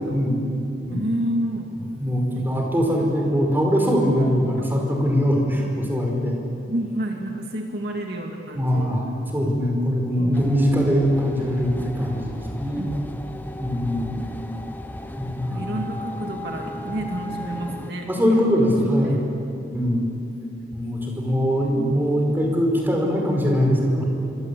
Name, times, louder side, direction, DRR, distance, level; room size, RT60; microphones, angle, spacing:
voice 1, 0.0-1.0 2.0-6.4 8.5-12.9 13.6-14.1 15.2-15.8 18.1-19.2 19.7-20.1 20.7-24.0, equal, 10° right, 0 dB, 5.1 m, -22 dB
voice 2, 0.9-1.7 2.3-2.5 4.6-4.7 6.7-9.0 10.2-10.3 12.7-12.9 15.5-18.5 18.9-19.2, right 1 dB, 60° right, 1 dB, 2.4 m, -30 dB
sound 1, 10.3-17.9, left 1 dB, 10° left, 1.1 m, -35 dB
27.5 x 24.5 x 8.6 m, 2.9 s
head